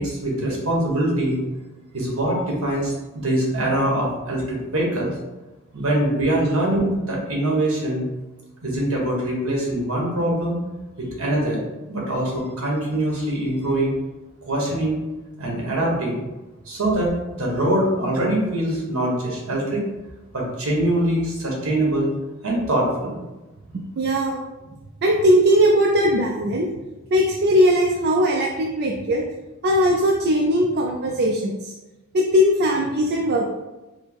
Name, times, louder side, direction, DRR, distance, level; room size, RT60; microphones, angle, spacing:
voice 1, 0.0-1.4 1.9-5.1 5.7-8.0 8.6-10.6 11.2-11.6 11.9-13.9 14.5-15.0 15.4-16.2 16.7-19.8 20.3-22.1 22.4-23.2, right 1 dB, 70° right, -2 dB, 1.3 m, -23 dB
voice 2, 24.0-24.4 25.0-26.7 27.1-29.3 29.6-31.7 32.1-33.4, equal, 50° right, 0 dB, 0.4 m, -19 dB
4.6 x 2.0 x 4.5 m, 1.1 s
head